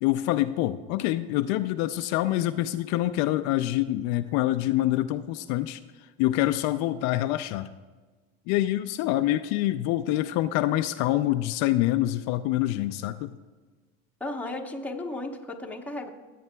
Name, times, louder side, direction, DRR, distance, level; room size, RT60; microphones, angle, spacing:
voice 1, 0.0-5.8 6.2-7.7 8.5-13.4, left 15 dB, 65° left, 10 dB, 0.5 m, -26 dB
voice 2, 14.2-16.1, left 2 dB, 5° left, 0 dB, 1.0 m, -34 dB
16.5 x 8.4 x 2.3 m, 1.3 s
supercardioid pair, 115°, 29 cm